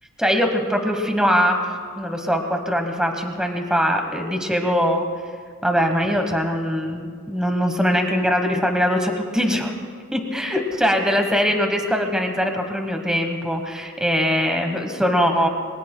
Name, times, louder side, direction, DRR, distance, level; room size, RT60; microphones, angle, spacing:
voice 1, 0.2-1.7 2.0-5.1 5.6-9.7 10.1-15.5, equal, 5° right, 4 dB, 1.2 m, -22 dB
29.0 x 22.5 x 2.2 m, 2.1 s
head